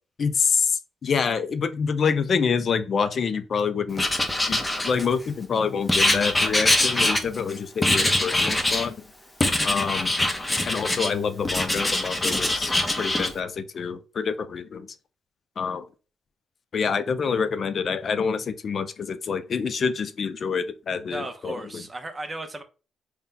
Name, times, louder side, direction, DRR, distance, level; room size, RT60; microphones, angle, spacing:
voice 1, 0.2-4.1 4.5-9.0 9.6-10.1 10.7-14.9 15.6-15.9 16.7-21.8, left 6 dB, 50° left, 0.3 m, -27 dB
Writing, 4.0-5.3 5.9-7.5 7.8-8.9 9.4-11.1 11.4-13.3, left 1 dB, 15° left, 0.7 m, -23 dB
voice 2, 21.1-22.6, right 2 dB, 25° right, 0.7 m, -35 dB
4.0 x 2.2 x 3.8 m
cardioid pair, 90°, 0 cm